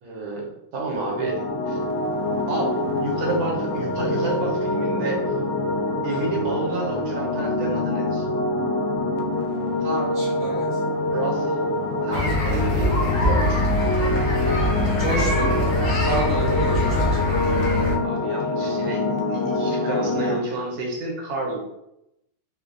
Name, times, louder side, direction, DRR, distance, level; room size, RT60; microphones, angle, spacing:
voice 1, 0.0-1.8 2.5-5.2 6.0-8.2 9.8-10.2 11.1-11.6 12.0-13.6 18.0-21.6, right 2 dB, 70° right, -2 dB, 1.7 m, -30 dB
sound 1, 0.9-20.4, left 2 dB, 80° left, 1.4 m, -25 dB
voice 2, 10.1-10.8 15.0-17.3, right 2 dB, 40° right, -8 dB, 1.0 m, -30 dB
sound 2, 12.1-17.9, left 1 dB, 50° left, 1.1 m, -23 dB
4.8 x 2.5 x 2.5 m, 0.83 s
omnidirectional pair, 2.3 m